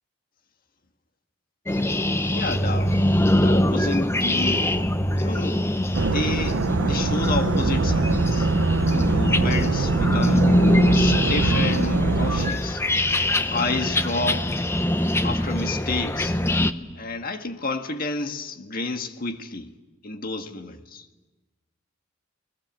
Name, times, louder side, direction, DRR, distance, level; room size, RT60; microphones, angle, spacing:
sound 1, 1.7-16.7, left 1 dB, 15° left, 0.8 m, -23 dB
voice 1, 2.3-2.9 3.3-4.7 5.1-5.6 5.9-8.5 8.8-10.5 10.9-12.8 13.5-14.5 15.2-16.4 16.9-19.7 20.0-21.0, left 3 dB, 50° left, 1.7 m, -30 dB
sound 2, 5.9-12.5, right 3 dB, 85° right, 0.8 m, -23 dB
27.5 x 20.5 x 7.5 m
head